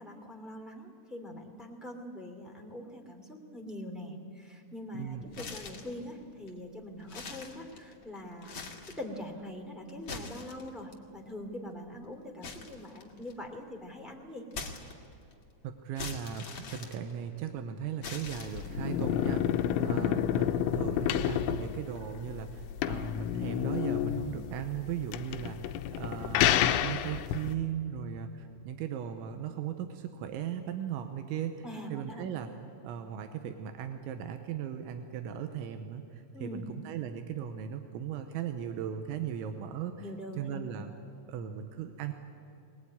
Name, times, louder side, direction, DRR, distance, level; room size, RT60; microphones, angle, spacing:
voice 1, 0.0-8.6 9.0-14.4 19.6-20.3 31.6-32.3 36.3-36.6 40.0-40.7, left 1 dB, ahead, 2 dB, 0.8 m, -43 dB
sound 1, 5.3-6.0 6.5-6.6 7.0-8.0 8.4-9.1 9.9-10.9 12.4-13.5 14.5-15.3 16.0-17.5 18.0-18.9, left 4 dB, 40° left, 1.9 m, -43 dB
voice 2, 15.6-26.5 26.8-31.6 31.9-32.5 32.8-40.0 40.4-40.9 41.3-42.1, right 9 dB, 85° right, 7 dB, 3.3 m, -37 dB
sound 2, 18.3-27.5, left 10 dB, 80° left, 3.2 m, -30 dB
22.0 x 20.0 x 9.6 m, 2.8 s
omnidirectional pair, 5.4 m